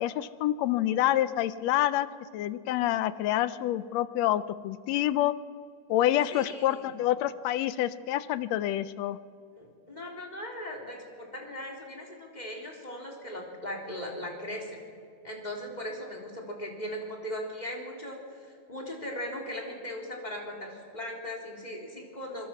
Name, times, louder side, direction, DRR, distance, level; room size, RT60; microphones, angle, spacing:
voice 1, 0.0-2.1 2.3-5.3 5.9-9.2, left 13 dB, 75° left, 15 dB, 1.7 m, -27 dB
voice 2, 6.3-6.9 9.6-14.8 15.2-22.5, equal, 15° left, 0 dB, 3.5 m, -38 dB
27.0 x 21.0 x 5.9 m, 2.3 s
omnidirectional pair, 3.5 m